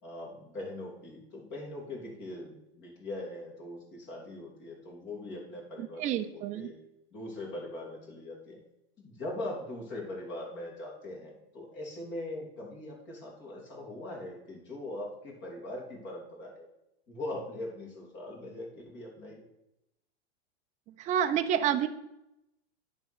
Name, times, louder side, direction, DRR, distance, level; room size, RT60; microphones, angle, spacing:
voice 1, 0.0-6.0 6.3-6.7 7.1-8.6 9.0-16.7 17.1-19.4, left 1 dB, 35° left, -2 dB, 3.1 m, -41 dB
voice 2, 5.8-6.7 21.0-21.9, right 9 dB, 25° right, 8 dB, 0.5 m, -29 dB
9.6 x 3.7 x 6.2 m, 0.87 s
supercardioid pair, 135°, 32 cm